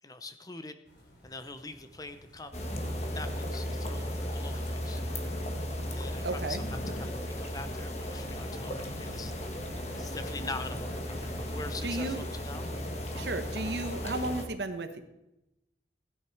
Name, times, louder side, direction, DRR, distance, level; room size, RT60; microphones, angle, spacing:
voice 1, 0.0-0.8 1.2-2.5 3.1-5.0 5.9-9.4 10.0-12.7 13.1-13.3, left 3 dB, 20° left, 10 dB, 0.7 m, -43 dB
sound 1, 0.8-13.2, equal, 75° left, 3.6 m, -56 dB
sound 2, 2.5-14.5, left 1 dB, 35° left, 1.5 m, -35 dB
voice 2, 6.2-6.6 11.8-12.2 13.1-15.0, right 2 dB, 70° right, 8 dB, 1.2 m, -34 dB
16.0 x 9.8 x 4.7 m, 0.93 s
head